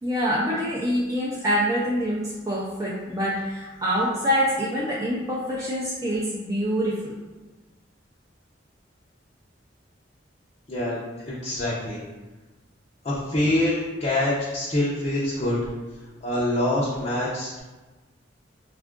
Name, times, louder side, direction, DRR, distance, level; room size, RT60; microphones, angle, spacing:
voice 1, 0.0-7.2, equal, 20° right, -7 dB, 0.5 m, -25 dB
voice 2, 10.7-12.0 13.0-15.6 16.2-17.6, left 1 dB, 40° left, -8 dB, 0.6 m, -25 dB
3.5 x 2.4 x 3.6 m, 1.2 s
head